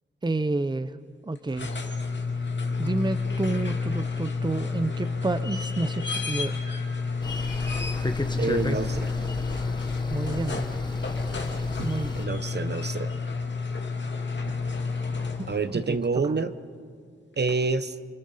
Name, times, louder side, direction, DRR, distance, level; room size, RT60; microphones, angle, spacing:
voice 1, 0.2-0.9 1.3-1.8 2.8-6.6 10.1-10.7 11.8-12.3 15.9-16.0, right 2 dB, 20° right, 13 dB, 0.7 m, -29 dB
sound 1, 1.4-15.7 17.5-17.6, left 4 dB, 60° left, 2.4 m, -30 dB
sound 2, 7.2-12.3, left 1 dB, 20° left, 1.5 m, -34 dB
voice 2, 8.4-9.1 11.5-11.6 12.2-13.1 15.5-16.5 17.4-17.9, right 4 dB, 55° right, 12 dB, 1.0 m, -27 dB
29.5 x 24.0 x 5.7 m, 2.2 s
cardioid pair, 60°, 21 cm